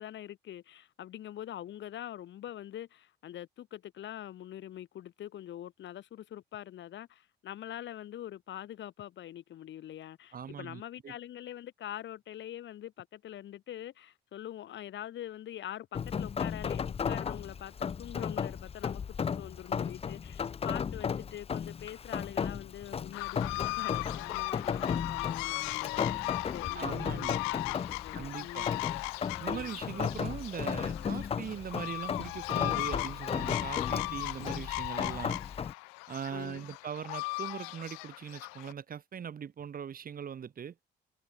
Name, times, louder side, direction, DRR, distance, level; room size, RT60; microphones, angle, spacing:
voice 1, 0.0-28.8 36.3-36.6, left 12 dB, 65° left, 6.4 m, -44 dB
voice 2, 10.3-11.1 26.7-27.4 28.1-28.7 29.4-35.4 36.1-40.7, right 7 dB, 45° right, 1.7 m, -40 dB
Rain, 15.9-35.7, left 7 dB, 30° left, 0.5 m, -35 dB
sound 1, 23.1-38.7, left 35 dB, 85° left, 2.2 m, -37 dB
hypercardioid pair, 65°, 21 cm